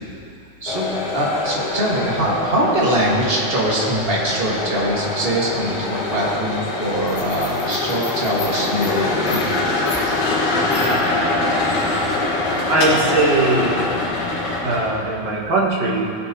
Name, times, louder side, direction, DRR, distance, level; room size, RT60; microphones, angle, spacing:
sound 1, 0.7-15.0, left 2 dB, 80° left, 3.4 m, -23 dB
voice 1, 1.1-10.0, right 1 dB, 25° right, -5 dB, 1.4 m, -22 dB
voice 2, 12.7-13.9 14.6-16.1, right 2 dB, 60° right, -5 dB, 2.8 m, -19 dB
18.0 x 10.0 x 3.0 m, 2.5 s
omnidirectional pair, 3.5 m